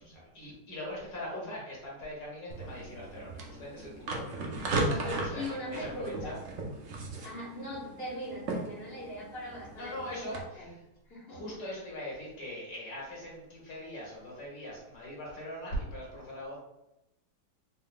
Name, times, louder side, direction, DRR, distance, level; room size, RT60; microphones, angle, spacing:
voice 1, 0.0-6.3 7.1-7.2 9.7-10.7 11.3-16.6, left 1 dB, 65° left, -4 dB, 1.9 m, -41 dB
sound 1, 2.5-10.4, right 2 dB, 60° right, 0.8 m, -37 dB
voice 2, 4.8-6.4 7.2-10.8 11.0-11.6, left 1 dB, 40° left, -6 dB, 1.4 m, -41 dB
4.2 x 3.7 x 2.3 m, 0.90 s
omnidirectional pair, 1.9 m